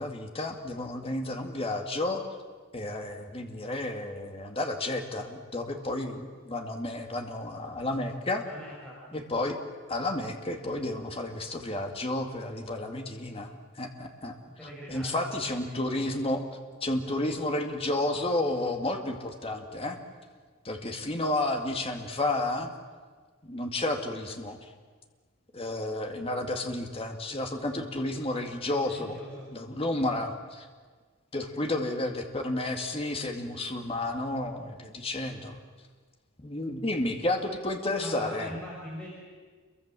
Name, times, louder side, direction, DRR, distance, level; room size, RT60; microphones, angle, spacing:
voice 1, 0.0-2.2 2.7-8.4 9.1-9.6 9.9-14.3 14.9-16.4 16.8-20.0 20.6-22.7 23.4-24.6 25.5-29.2 29.5-30.7 31.3-35.6 36.4-38.5, left 2 dB, 30° left, 4 dB, 2.2 m, -31 dB
voice 2, 8.4-9.2 14.6-15.6 28.8-29.5 38.0-39.1, equal, 5° left, -5 dB, 5.7 m, -42 dB
28.5 x 23.5 x 7.6 m, 1.5 s
head